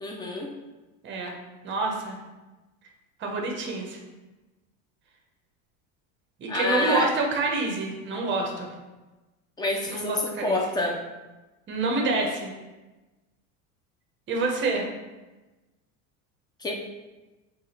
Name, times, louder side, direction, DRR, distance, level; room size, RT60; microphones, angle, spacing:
voice 1, 0.0-0.5 6.5-7.1 9.6-11.0 16.6-16.7, left 2 dB, 10° left, 1 dB, 0.3 m, -27 dB
voice 2, 1.0-1.3 1.6-2.2 3.2-4.0 6.4-8.7 9.8-10.6 11.7-12.5 14.3-14.9, right 3 dB, 30° right, 1 dB, 0.8 m, -27 dB
4.7 x 2.5 x 4.2 m, 1.1 s
cardioid pair, 145°, 37 cm